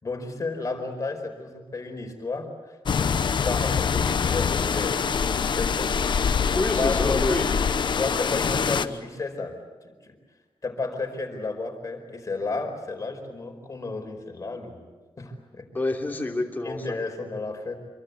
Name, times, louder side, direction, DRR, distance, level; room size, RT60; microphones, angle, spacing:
voice 1, 0.0-2.8 3.3-5.1 5.5-6.1 6.8-7.3 8.0-10.2 10.6-14.8 15.2-15.7 16.6-17.8, left 3 dB, 35° left, 4 dB, 4.7 m, -32 dB
sound 1, 2.9-8.9, left 6 dB, 60° left, 1.0 m, -24 dB
voice 2, 6.5-7.9 8.5-8.6 15.7-17.0, left 2 dB, 20° left, 0 dB, 3.2 m, -28 dB
27.0 x 23.5 x 8.2 m, 1.3 s
wide cardioid pair, 155°, 9 cm